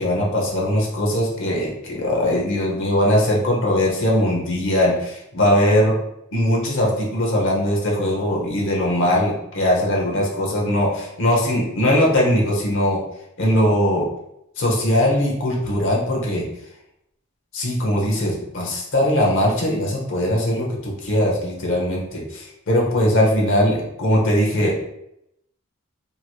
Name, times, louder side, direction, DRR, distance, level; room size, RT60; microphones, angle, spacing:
voice 1, 0.0-5.9 6.3-13.0 13.4-14.1 14.6-16.5 17.5-24.8, left 1 dB, 65° left, -2 dB, 0.8 m, -20 dB
3.0 x 2.9 x 2.3 m, 0.80 s
head